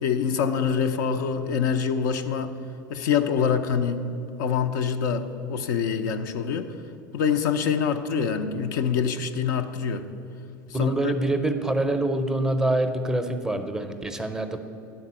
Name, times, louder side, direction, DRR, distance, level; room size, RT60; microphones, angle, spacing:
voice 1, 0.0-2.6 2.9-4.1 4.4-6.7 7.1-10.1 10.8-11.1, left 7 dB, 65° left, 7 dB, 0.5 m, -25 dB
voice 2, 10.7-14.6, right 1 dB, 5° right, 7 dB, 0.6 m, -25 dB
9.9 x 4.0 x 7.4 m, 2.8 s
figure-of-eight pair, 80°, 11 cm